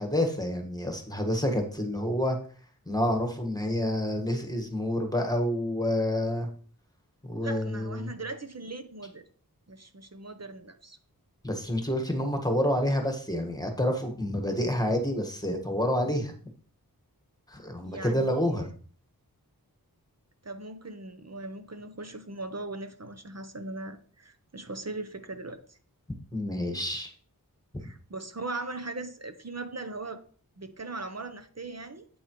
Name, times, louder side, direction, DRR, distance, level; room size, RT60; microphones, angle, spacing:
voice 1, 0.0-2.4 2.9-6.5 7.2-8.1 11.4-16.3 17.5-18.7 26.3-27.1, left 1 dB, 10° left, 4 dB, 1.5 m, -28 dB
voice 2, 7.4-9.2 9.7-11.0 17.8-18.7 20.4-25.8 27.8-30.2 30.6-32.1, right 2 dB, 45° right, 9 dB, 0.8 m, -39 dB
8.5 x 7.9 x 3.1 m, 0.43 s
wide cardioid pair, 45°, 37 cm